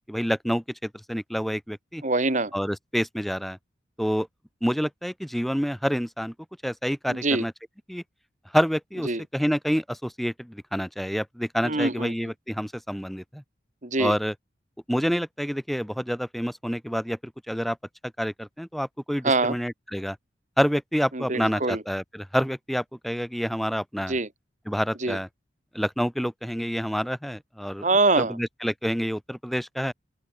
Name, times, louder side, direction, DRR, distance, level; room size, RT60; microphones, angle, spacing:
voice 1, 0.0-2.0 2.5-3.6 4.0-4.3 4.6-6.3 6.6-7.5 7.9-8.0 8.5-13.4 14.0-14.3 14.9-17.8 18.2-20.2 20.6-24.2 24.7-25.3 25.7-27.8 28.2-29.9, equal, ahead, 3.0 m, -28 dB
voice 2, 2.0-2.5 7.1-7.4 9.1-9.2 11.6-12.1 13.8-14.1 19.2-19.6 21.1-21.8 24.1-24.3 25.0-25.2 27.8-28.3, right 2 dB, 45° right, 2.4 m, -24 dB
open air
head